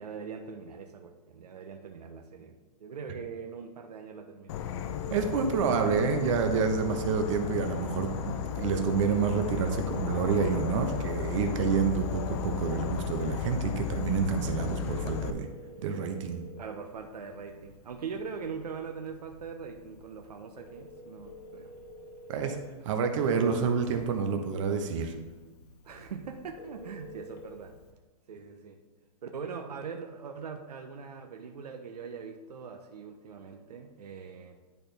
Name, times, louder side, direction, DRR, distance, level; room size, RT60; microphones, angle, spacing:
voice 1, 0.0-4.6 16.6-21.7 25.8-27.7 28.3-28.8 29.2-34.6, right 5 dB, 85° right, 4 dB, 0.8 m, -42 dB
Insect / Frog, 4.5-15.3, left 8 dB, 45° left, 0.5 m, -34 dB
voice 2, 5.1-15.5 15.8-16.4 22.3-22.6 22.8-25.1, right 6 dB, 55° right, 5 dB, 1.0 m, -28 dB
Telephone, 8.5-27.9, left 1 dB, 90° left, 1.3 m, -51 dB
10.5 x 4.3 x 3.4 m, 1.3 s
hypercardioid pair, 140°, 20 cm